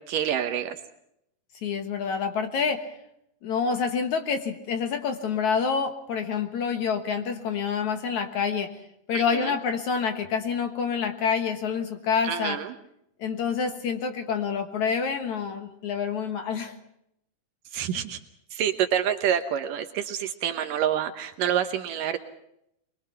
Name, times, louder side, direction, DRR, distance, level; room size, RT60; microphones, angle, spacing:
voice 1, 0.1-0.8 9.1-9.5 12.2-12.7 17.7-18.2 18.5-22.2, right 9 dB, 70° right, 9 dB, 2.4 m, -27 dB
voice 2, 1.6-2.8 3.4-8.7 9.1-12.6 13.2-16.7, left 6 dB, 60° left, 7 dB, 2.4 m, -27 dB
24.0 x 22.5 x 5.7 m, 0.77 s
omnidirectional pair, 4.5 m